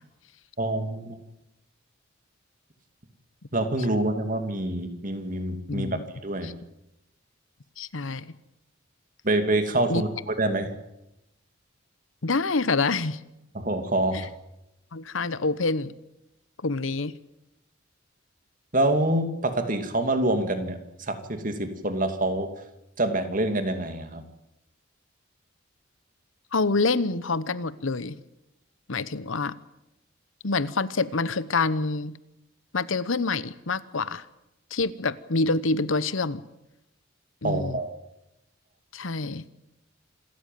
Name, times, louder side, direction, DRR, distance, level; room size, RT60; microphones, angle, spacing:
voice 1, 0.6-1.2 3.5-5.9 6.2-6.5 9.2-10.7 13.5-14.3 18.7-20.8 21.1-22.5 23.0-24.2 37.4-37.9, right 1 dB, 40° right, 8 dB, 2.5 m, -26 dB
voice 2, 5.7-6.0 6.4-6.5 7.8-8.4 9.9-10.0 12.2-13.2 14.1-14.3 14.9-15.9 16.6-17.1 26.5-28.2 28.9-29.6 30.4-32.2 32.7-34.2 34.7-36.4 37.4-37.8 38.9-39.5, left 3 dB, 80° left, 16 dB, 1.0 m, -27 dB
27.0 x 14.0 x 9.2 m, 0.90 s
head